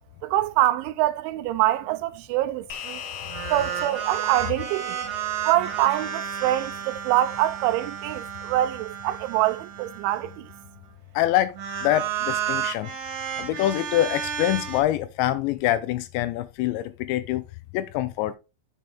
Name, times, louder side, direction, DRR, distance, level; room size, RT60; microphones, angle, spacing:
voice 1, 0.2-3.0 3.5-5.0 5.4-10.5, right 14 dB, 85° right, 3.0 m, -25 dB
sound 1, 2.7-7.3, left 7 dB, 60° left, 2.4 m, -41 dB
sound 2, 3.3-10.7 11.5-14.8, right 9 dB, 55° right, 2.5 m, -32 dB
voice 2, 11.2-11.5 11.8-12.9 13.4-17.4 17.7-18.4, left 13 dB, 85° left, 2.7 m, -25 dB
7.6 x 7.1 x 3.5 m
omnidirectional pair, 5.5 m